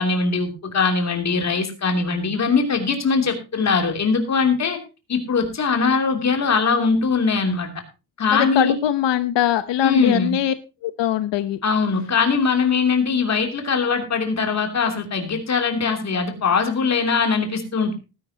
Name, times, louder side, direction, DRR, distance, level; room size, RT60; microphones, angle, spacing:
voice 1, 0.0-4.8 5.1-7.7 8.2-8.8 9.8-10.4 11.6-17.9, left 5 dB, 40° left, 4 dB, 3.0 m, -21 dB
voice 2, 8.3-10.5 10.8-11.6, left 10 dB, 90° left, 11 dB, 1.0 m, -21 dB
19.0 x 10.5 x 2.8 m, 0.29 s
wide cardioid pair, 170°, 42 cm